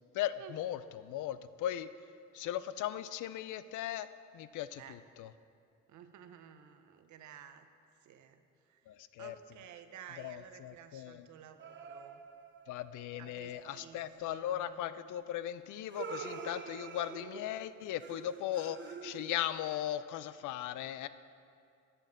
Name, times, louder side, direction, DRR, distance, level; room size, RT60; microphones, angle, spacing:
voice 1, 0.1-1.9 2.3-5.3 8.9-9.3 10.2-11.3 12.7-21.1, left 12 dB, 80° left, 14 dB, 0.5 m, -38 dB
voice 2, 5.9-7.7 8.0-12.2 13.2-14.8, right 9 dB, 70° right, 9 dB, 0.8 m, -53 dB
sound 1, 11.6-14.3 15.9-19.7, right 5 dB, 40° right, 0.8 m, -47 dB
11.0 x 5.7 x 7.4 m, 2.4 s
cardioid pair, 90°, 30 cm